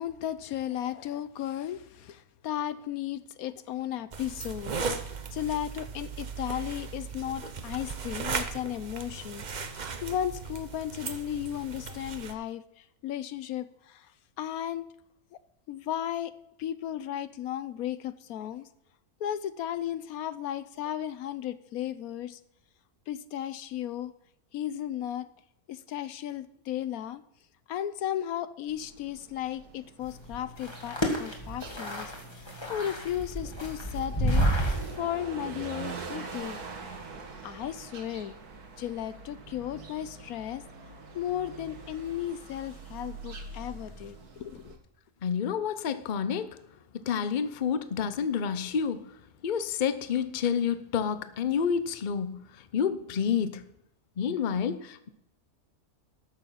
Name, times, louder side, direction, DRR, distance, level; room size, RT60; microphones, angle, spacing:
voice 1, 0.0-4.8 5.0-14.1 14.4-14.9 15.7-16.3 16.6-18.7 19.2-22.4 23.1-24.1 24.5-25.3 25.7-27.2 27.7-36.6 36.9-37.0 37.4-38.4 38.8-40.7 41.1-44.8, left 11 dB, 75° left, 15 dB, 1.1 m, -35 dB
sound 1, 4.1-12.3, right 5 dB, 40° right, 0.7 m, -37 dB
sound 2, 28.7-44.8, right 4 dB, 80° right, 2.1 m, -44 dB
sound 3, 30.0-35.0, equal, 15° left, 1.9 m, -30 dB
voice 2, 45.2-46.6 47.1-49.1 49.4-52.4 52.7-53.6 54.2-55.1, left 7 dB, 45° left, 13 dB, 0.7 m, -29 dB
13.0 x 6.9 x 5.6 m, 0.80 s
omnidirectional pair, 1.6 m